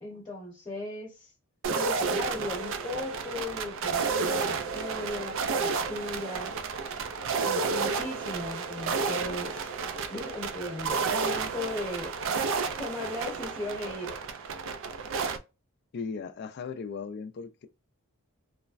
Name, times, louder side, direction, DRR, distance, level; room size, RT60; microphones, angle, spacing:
voice 1, 0.0-1.3 1.7-6.6 7.4-9.7 10.1-12.1 12.8-14.1, left 2 dB, 20° left, 0.9 m, -37 dB
sound 1, 1.6-15.4, right 4 dB, 60° right, 0.4 m, -31 dB
voice 2, 15.9-17.7, left 5 dB, 50° left, 0.3 m, -37 dB
3.1 x 2.1 x 2.4 m
head